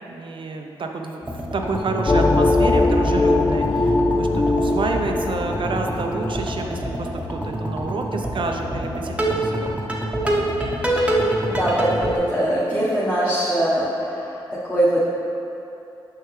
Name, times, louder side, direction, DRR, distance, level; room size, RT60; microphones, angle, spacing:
voice 1, 0.1-9.8, right 3 dB, 60° right, 3 dB, 0.6 m, -29 dB
sound 1, 1.2-12.2, right 1 dB, 10° right, 1.0 m, -26 dB
sound 2, 2.1-7.4, left 2 dB, 30° left, 0.4 m, -21 dB
voice 2, 11.5-14.4 14.7-15.0, right 1 dB, 10° left, -9 dB, 1.3 m, -21 dB
6.6 x 5.7 x 3.3 m, 2.9 s
cardioid pair, 55°, 10 cm